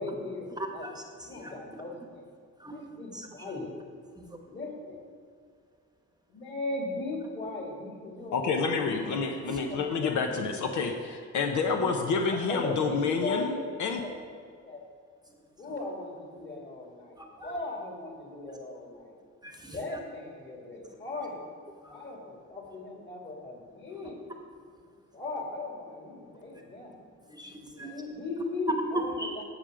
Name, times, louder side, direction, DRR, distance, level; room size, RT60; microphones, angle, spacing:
voice 1, 0.0-0.5 0.7-0.9 1.2-2.2 2.7-3.8 4.5-5.0 6.3-9.2 9.6-10.7 11.5-11.9 12.3-14.8 15.6-19.1 19.7-21.4 21.9-24.2 25.1-26.9 27.7-29.3, left 2 dB, 35° left, -1 dB, 2.6 m, -38 dB
voice 2, 0.6-1.8 2.6-2.8 3.1-3.3 4.2-4.3 9.5-9.6 15.7-15.8 17.2-17.6 19.4-20.0 21.8-22.0 27.3-28.0 28.9-29.3, right 1 dB, 15° right, 3 dB, 1.0 m, -39 dB
voice 3, 8.3-14.0, left 4 dB, 80° left, 3 dB, 0.9 m, -29 dB
13.5 x 5.1 x 5.0 m, 2.1 s
cardioid pair, 90°, 30 cm